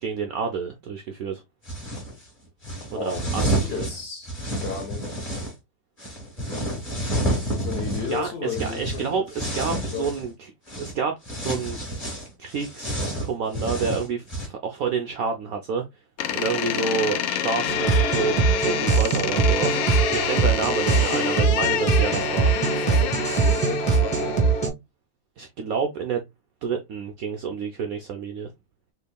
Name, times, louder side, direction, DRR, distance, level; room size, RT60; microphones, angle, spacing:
voice 1, 0.0-1.4 2.9-3.9 8.1-10.5 10.8-11.2 11.4-11.8 12.4-15.8 16.3-19.8 20.1-22.6 25.4-26.3 26.6-28.5, right 5 dB, 80° right, 0.7 m, -29 dB
sound 1, 1.7-2.1 2.6-5.5 6.0-10.3 10.7-10.9 11.3-14.5, right 1 dB, 20° left, 1.3 m, -29 dB
voice 2, 2.9-4.3 4.6-5.3 7.5-9.2 9.5-10.1 22.5-24.4, left 6 dB, 55° left, 0.7 m, -34 dB
Door, 16.2-24.7, left 10 dB, 80° left, 1.4 m, -28 dB
sound 2, 17.7-24.7, right 4 dB, 5° left, 0.9 m, -22 dB
4.4 x 2.9 x 2.2 m
omnidirectional pair, 2.1 m